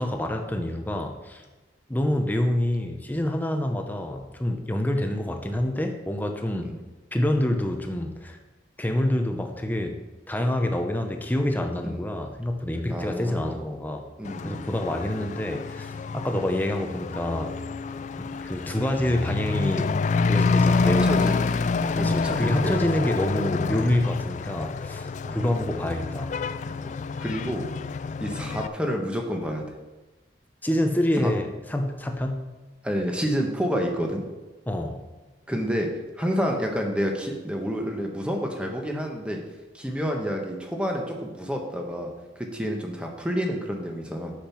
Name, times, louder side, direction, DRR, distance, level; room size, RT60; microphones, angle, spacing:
voice 1, 0.0-1.4 1.9-6.8 7.1-8.4 8.8-14.1 14.4-17.6 18.2-21.4 22.0-26.4 30.6-32.5 34.7-35.1, left 1 dB, 10° left, 4 dB, 0.8 m, -27 dB
voice 2, 12.9-13.6 14.2-14.6 20.8-21.5 21.9-22.8 25.2-25.4 26.8-27.7 28.2-29.7 31.2-31.3 32.8-34.3 35.5-35.9 36.2-39.4 39.7-44.3, equal, 5° right, 1 dB, 1.2 m, -29 dB
Truck / Accelerating revving vroom, 14.2-28.7, left 4 dB, 40° left, 0.3 m, -27 dB
8.7 x 6.6 x 5.9 m, 1.2 s
head